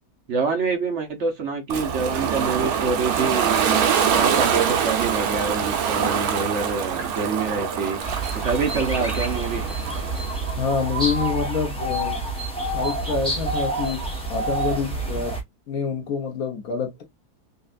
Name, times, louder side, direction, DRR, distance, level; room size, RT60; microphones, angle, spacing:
voice 1, 0.3-8.0 8.3-9.6, right 4 dB, 50° right, 1.1 m, -26 dB
Ocean, 1.7-10.5, right 7 dB, 70° right, 1.3 m, -24 dB
sound 1, 8.0-15.4, right 2 dB, 5° left, 1.2 m, -28 dB
voice 2, 10.6-12.2 12.7-14.0 14.3-15.3 15.7-17.0, left 5 dB, 65° left, 1.5 m, -26 dB
5.4 x 2.4 x 2.4 m
omnidirectional pair, 1.7 m